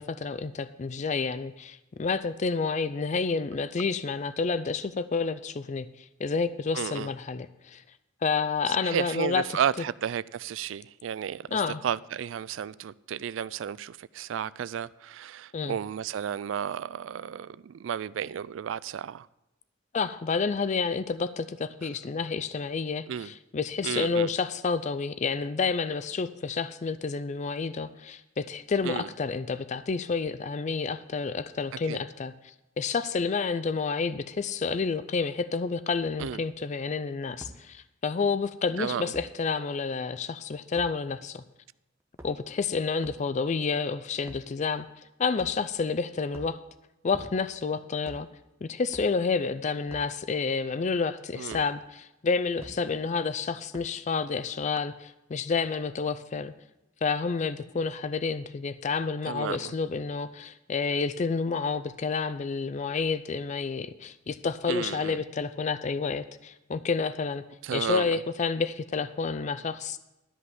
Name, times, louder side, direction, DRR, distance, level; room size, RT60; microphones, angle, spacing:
voice 1, 0.0-7.8 8.2-9.4 11.5-11.8 15.5-15.7 19.9-41.4 42.2-44.9 45.2-46.6 47.0-48.3 48.6-56.5 57.0-67.4 67.7-70.0, left 4 dB, 40° left, 13 dB, 0.4 m, -29 dB
voice 2, 6.7-7.1 8.7-19.3 23.1-23.3 23.8-24.3 28.8-29.1 31.9-32.0 36.2-36.4 38.8-39.1 51.4-51.6 59.3-59.7 64.7-65.2 67.6-68.2, right 8 dB, 75° right, 20 dB, 0.3 m, -33 dB
sound 1, 36.2-36.4 37.4-37.6 39.1-39.3 40.8-40.9 42.0-42.6 43.0-43.2 44.2-44.5 45.4-45.8 46.3-46.6 47.1-47.6 48.0-48.3 48.9-49.1 49.9-50.1 51.5-51.7 52.6-52.8 53.7-54.0, equal, 15° right, 1.0 m, -46 dB
13.0 x 5.5 x 7.9 m, 0.94 s
head